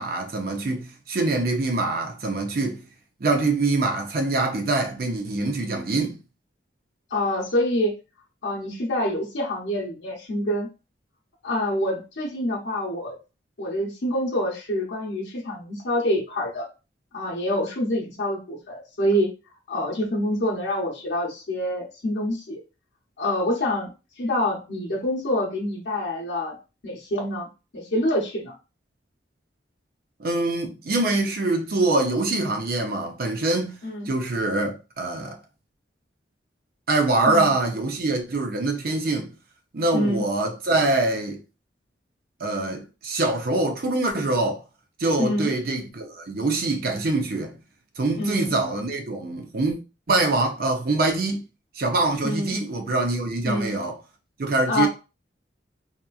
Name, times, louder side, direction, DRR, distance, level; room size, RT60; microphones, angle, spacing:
voice 1, 0.0-2.8 3.2-6.2 30.2-33.8 34.1-35.4 36.9-39.3 39.7-41.4 42.4-44.6 45.0-47.6 48.0-49.8 50.1-51.4 51.7-54.0 54.4-54.9, right 2 dB, 50° right, 0.6 m, -24 dB
voice 2, 7.1-7.9 8.4-10.7 11.4-13.1 13.6-16.7 17.1-19.3 19.7-22.6 23.2-23.9 24.2-26.6 26.8-27.5 27.7-28.5 33.8-34.1 37.3-37.5 39.9-40.3 45.2-45.5 48.2-48.5 52.2-52.5 53.4-53.8 54.7-54.9, left 1 dB, 70° left, 0.7 m, -26 dB
2.8 x 2.4 x 2.3 m
head